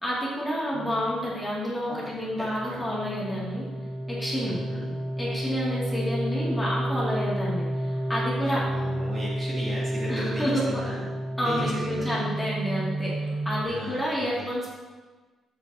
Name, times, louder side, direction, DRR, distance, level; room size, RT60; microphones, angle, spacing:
voice 1, 0.0-3.6 4.1-4.6 5.2-8.7 10.1-10.8 11.4-14.7, equal, 5° left, -7 dB, 2.8 m, -29 dB
sound 1, 0.7-13.6, right 1 dB, 40° right, 1.1 m, -31 dB
voice 2, 2.4-2.9 4.4-4.9 8.4-11.1 11.4-12.2 13.6-14.5, equal, 25° right, -6 dB, 3.0 m, -36 dB
13.0 x 8.0 x 3.0 m, 1.3 s
cardioid pair, 130°, 0 cm